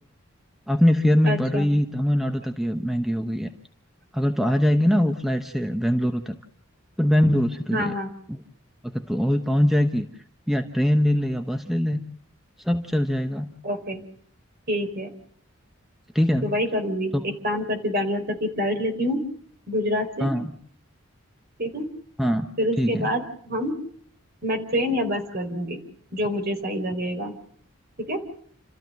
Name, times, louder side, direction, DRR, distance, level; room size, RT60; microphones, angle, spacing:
voice 1, 0.7-3.5 4.1-6.4 7.0-7.9 8.3-8.4 8.8-10.1 10.5-12.0 12.6-13.5 16.1-16.5 17.1-17.2 20.2-20.5 22.2-22.5 22.8-23.1, equal, ahead, 5 dB, 1.0 m, -22 dB
voice 2, 1.2-1.7 7.7-8.1 13.6-14.0 14.7-15.1 16.4-19.2 19.7-20.3 21.6-21.9 22.6-23.7 24.4-25.8 26.1-27.3 28.1-28.2, equal, 45° right, 5 dB, 3.9 m, -26 dB
29.0 x 14.0 x 7.6 m, 0.62 s
head